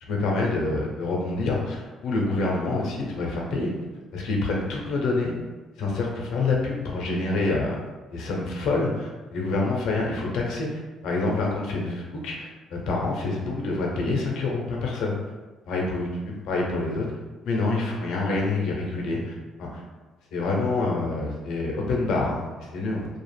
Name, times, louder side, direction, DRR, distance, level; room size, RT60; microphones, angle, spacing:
voice 1, 0.0-3.7 4.1-5.3 5.8-7.8 8.1-15.2 15.7-17.1 17.4-19.8 20.3-23.1, left 3 dB, 75° left, -1 dB, 0.6 m, -27 dB
2.3 x 2.1 x 3.2 m, 1.2 s
cardioid pair, 85°, 0 cm